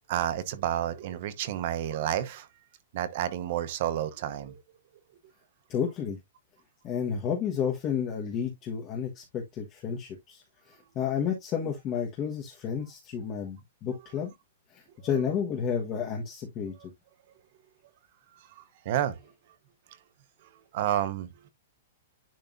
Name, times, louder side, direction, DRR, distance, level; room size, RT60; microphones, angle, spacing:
voice 1, 0.1-2.5 2.9-4.6 16.8-16.9 18.6-19.2 20.7-21.3, right 11 dB, 40° right, 0.8 m, -30 dB
voice 2, 5.7-6.2 6.8-14.3 14.7-16.7, left 7 dB, 20° left, 1.4 m, -31 dB
10.5 x 3.5 x 2.6 m
hypercardioid pair, 170°, 0 cm